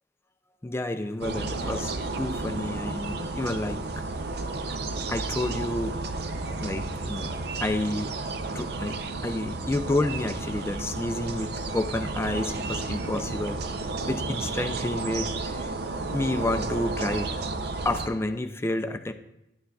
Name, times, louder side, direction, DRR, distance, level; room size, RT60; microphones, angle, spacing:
voice 1, 0.6-4.0 5.1-6.0 6.6-8.1 8.5-15.7 16.1-17.3 17.8-19.1, left 1 dB, 15° left, 7 dB, 0.4 m, -30 dB
sound 1, 1.2-18.1, right 3 dB, 65° right, 0.6 m, -32 dB
11.0 x 9.2 x 2.3 m, 0.87 s
head